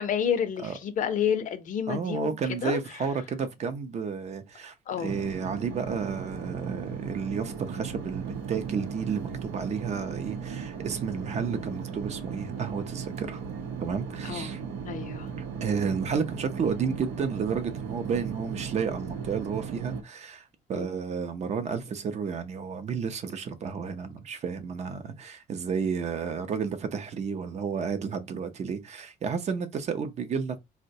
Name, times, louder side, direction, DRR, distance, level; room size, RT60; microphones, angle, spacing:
voice 1, 0.0-2.3 2.6-2.8 4.9-5.1 14.3-14.5 14.9-15.3 20.7-20.9, left 8 dB, 50° left, 0.5 m, -29 dB
voice 2, 1.9-13.4 13.8-14.6 15.6-30.6, right 6 dB, 40° right, 0.5 m, -32 dB
sound 1, 5.0-20.0, right 6 dB, 85° right, 0.7 m, -36 dB
3.8 x 2.1 x 2.6 m
cardioid pair, 110°, 17 cm